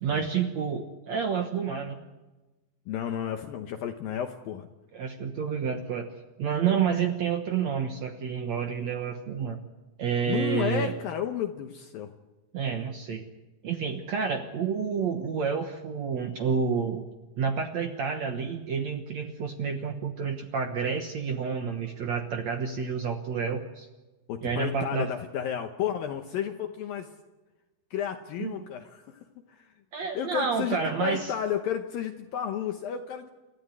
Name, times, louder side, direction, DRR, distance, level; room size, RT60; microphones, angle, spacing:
voice 1, 0.0-2.0 4.9-6.1 6.4-9.6 10.0-10.9 12.5-13.2 13.6-17.1 17.4-23.9 24.4-25.1 28.4-28.6 29.9-31.3, right 6 dB, 75° right, 5 dB, 1.5 m, -29 dB
voice 2, 2.9-4.7 10.2-12.1 24.3-27.1 27.9-29.7 30.1-33.3, left 9 dB, 70° left, 6 dB, 2.4 m, -32 dB
29.0 x 13.5 x 9.6 m, 1.1 s
omnidirectional pair, 5.1 m